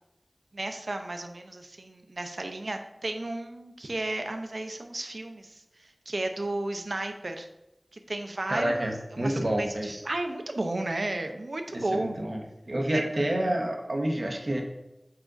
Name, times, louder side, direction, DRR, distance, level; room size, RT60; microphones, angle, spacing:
voice 1, 0.5-7.5 8.1-12.2 12.9-13.0, right 2 dB, 80° right, 6 dB, 0.6 m, -33 dB
voice 2, 8.5-10.0 11.7-12.4 12.7-14.6, right 1 dB, 60° right, 1 dB, 1.1 m, -28 dB
7.3 x 5.0 x 2.5 m, 0.90 s
wide cardioid pair, 50°, 0 cm